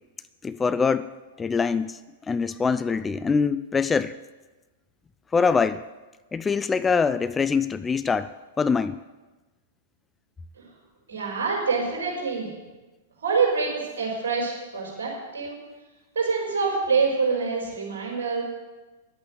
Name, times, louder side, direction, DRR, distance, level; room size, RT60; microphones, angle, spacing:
voice 1, 0.4-1.1 1.4-2.0 2.3-4.2 5.3-5.8 6.3-9.0, left 5 dB, 15° left, 14 dB, 0.3 m, -24 dB
voice 2, 11.1-12.5 13.2-15.6 16.2-18.4, right 4 dB, 60° right, -2 dB, 5.2 m, -26 dB
11.0 x 8.6 x 7.8 m, 1.2 s
figure-of-eight pair, 100°, 0 cm